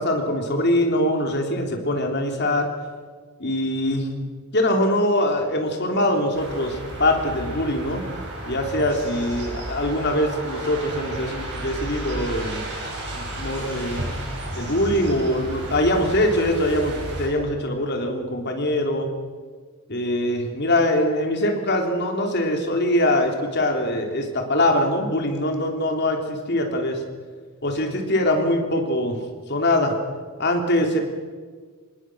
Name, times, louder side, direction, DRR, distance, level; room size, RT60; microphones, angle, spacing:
voice 1, 0.0-2.7 3.4-4.2 4.5-8.0 8.5-12.6 13.1-14.0 14.6-19.1 19.9-27.0 27.6-29.2 29.5-29.9 30.4-31.0, left 1 dB, 50° left, 3 dB, 3.4 m, -23 dB
sound 1, 6.3-17.3, right 1 dB, 50° right, 7.1 m, -33 dB
25.5 x 20.5 x 6.3 m, 1.5 s
head